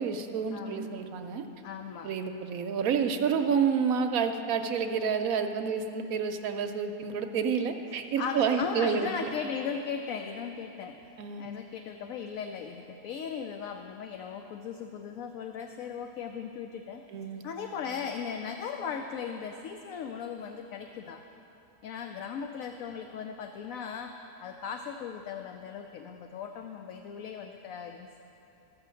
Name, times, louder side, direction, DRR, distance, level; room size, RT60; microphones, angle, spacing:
voice 1, 0.0-1.4 2.0-9.3 11.2-11.5 17.1-17.4, right 6 dB, 70° right, 6 dB, 1.0 m, -29 dB
voice 2, 0.5-0.9 1.6-2.1 8.2-11.0 11.4-17.0 17.4-21.2 21.8-28.2, left 6 dB, 70° left, 5 dB, 0.9 m, -37 dB
14.5 x 6.2 x 7.6 m, 2.9 s
omnidirectional pair, 1.7 m